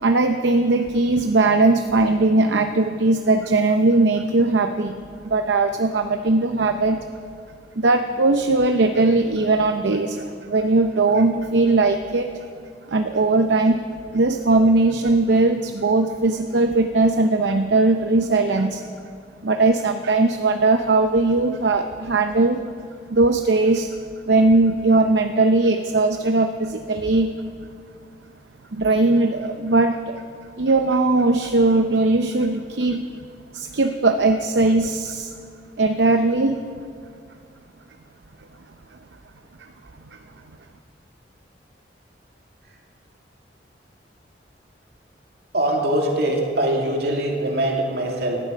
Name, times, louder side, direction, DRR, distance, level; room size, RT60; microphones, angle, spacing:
voice 1, 0.0-5.0 5.2-7.0 7.8-12.3 12.9-13.8 14.1-18.9 19.4-22.6 23.1-23.9 24.2-27.3 28.7-30.2 30.6-33.0 33.5-35.3 35.8-36.6 40.1-40.2, right 2 dB, 80° right, 7 dB, 0.7 m, -19 dB
voice 2, 45.5-48.4, right 1 dB, 60° right, 0 dB, 2.5 m, -22 dB
18.0 x 12.5 x 5.2 m, 2.1 s
head